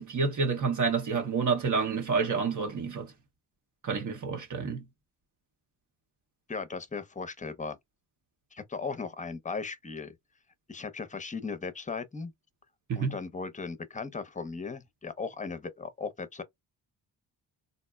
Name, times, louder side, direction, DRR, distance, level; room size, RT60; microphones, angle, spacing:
voice 1, 0.0-3.1 3.8-4.8 12.9-13.1, right 5 dB, 45° right, 0.8 m, -29 dB
voice 2, 6.5-7.8 8.5-10.1 10.7-12.3 13.0-16.4, left 4 dB, 15° left, 0.7 m, -37 dB
3.9 x 2.1 x 2.2 m
supercardioid pair, 50°, 44 cm